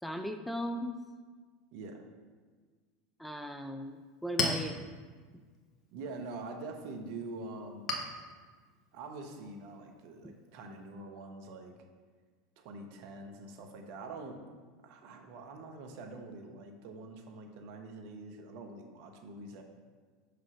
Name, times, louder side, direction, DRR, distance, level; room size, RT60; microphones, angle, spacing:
voice 1, 0.0-1.0 3.2-4.8 10.2-10.3, equal, ahead, 6 dB, 0.5 m, -37 dB
voice 2, 1.7-2.0 5.9-7.8 8.9-11.7 12.6-14.4 14.8-19.6, right 3 dB, 60° right, 4 dB, 1.1 m, -45 dB
Chink clink, 3.8-10.9, left 2 dB, 35° left, 1.3 m, -41 dB
5.5 x 5.1 x 5.9 m, 1.5 s
hypercardioid pair, 85°, 0 cm